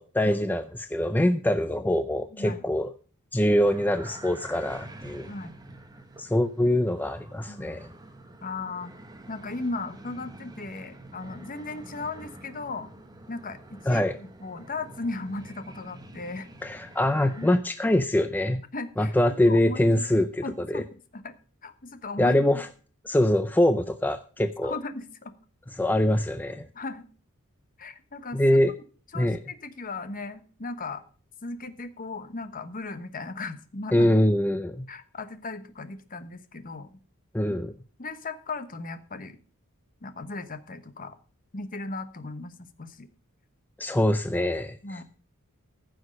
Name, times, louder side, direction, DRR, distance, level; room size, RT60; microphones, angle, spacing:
voice 1, 0.0-2.9 3.3-5.3 6.2-7.9 13.9-14.2 16.6-18.6 19.0-20.8 22.2-22.7 23.0-24.7 25.7-26.7 28.3-28.7 29.1-29.4 33.9-34.9 37.3-37.7 43.8-45.0, left 1 dB, 10° left, 9 dB, 0.4 m, -24 dB
voice 2, 2.3-2.6 5.3-5.6 7.5-7.8 8.4-8.9 9.3-12.9 13.3-16.5 17.4-17.5 18.7-19.1 19.4-20.9 21.1-21.4 21.6-22.4 24.6-25.3 26.7-27.0 27.8-28.4 29.1-31.0 31.4-34.1 34.9-37.0 38.0-39.4 40.0-41.1 41.5-43.1 44.8-45.0, left 3 dB, 40° left, 10 dB, 1.1 m, -37 dB
sound 1, 3.6-17.6, right 1 dB, 20° right, 1.3 m, -47 dB
15.0 x 6.3 x 5.2 m, 0.40 s
head